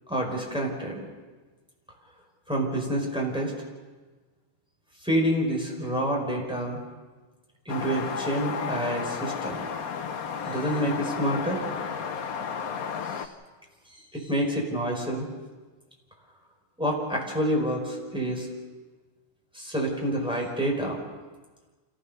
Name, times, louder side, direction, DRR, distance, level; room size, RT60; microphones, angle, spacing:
voice 1, 0.1-1.0 2.5-3.5 5.0-6.8 7.6-9.6 10.4-11.6 13.1-13.3 13.9-15.3 16.8-18.5 19.5-21.0, right 1 dB, ahead, -1 dB, 4.9 m, -28 dB
sound 1, 7.7-13.3, left 6 dB, 50° left, 1.2 m, -33 dB
27.5 x 15.5 x 6.8 m, 1.3 s
omnidirectional pair, 2.3 m